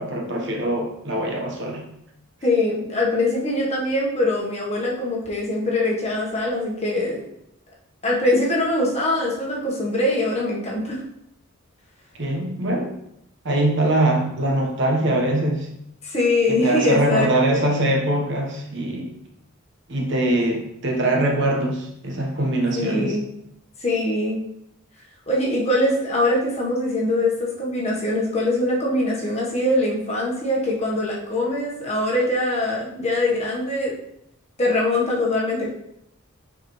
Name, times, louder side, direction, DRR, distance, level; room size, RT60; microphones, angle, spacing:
voice 1, 0.0-1.9 12.2-12.9 13.4-15.7 16.5-19.1 19.9-23.2, right 1 dB, 55° right, 0 dB, 1.2 m, -22 dB
voice 2, 2.4-7.2 8.0-11.0 16.0-17.6 22.7-23.3 23.8-24.4 25.3-33.9 34.6-35.7, left 1 dB, 30° left, -3 dB, 1.3 m, -23 dB
6.7 x 4.9 x 3.2 m, 0.78 s
head